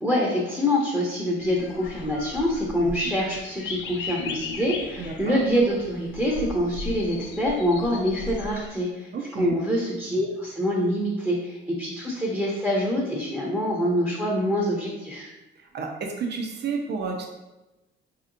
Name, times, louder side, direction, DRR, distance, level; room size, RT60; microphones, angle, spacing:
voice 1, 0.0-9.1 9.4-15.3, equal, ahead, -5 dB, 0.9 m, -25 dB
sound 1, 1.4-8.7, left 4 dB, 75° left, 0.4 m, -37 dB
voice 2, 5.0-5.4 9.1-9.6 15.6-17.3, right 5 dB, 60° right, 2 dB, 0.7 m, -31 dB
4.0 x 2.9 x 2.6 m, 1.0 s
cardioid pair, 90°, 20 cm